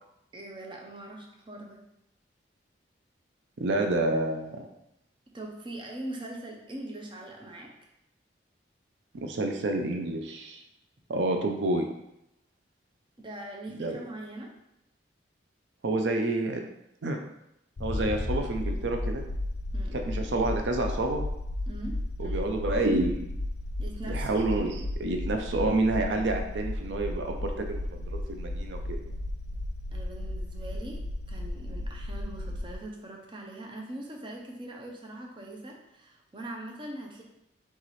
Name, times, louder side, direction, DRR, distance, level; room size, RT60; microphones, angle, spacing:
voice 1, 0.3-1.8 5.3-7.7 13.2-14.5 19.7-20.0 21.7-22.0 23.8-24.4 29.9-31.0 31.3-37.2, right 1 dB, 25° right, 0 dB, 0.6 m, -41 dB
voice 2, 3.6-4.6 9.1-10.6 11.1-11.9 13.8-14.0 15.8-16.6 17.0-17.2 17.8-19.2 19.9-21.2 22.2-23.2 24.1-24.7 25.0-29.1, right 2 dB, 75° right, 4 dB, 0.5 m, -28 dB
sound 1, 17.8-32.7, left 1 dB, 70° left, 0.5 m, -34 dB
3.7 x 3.1 x 4.1 m, 0.83 s
head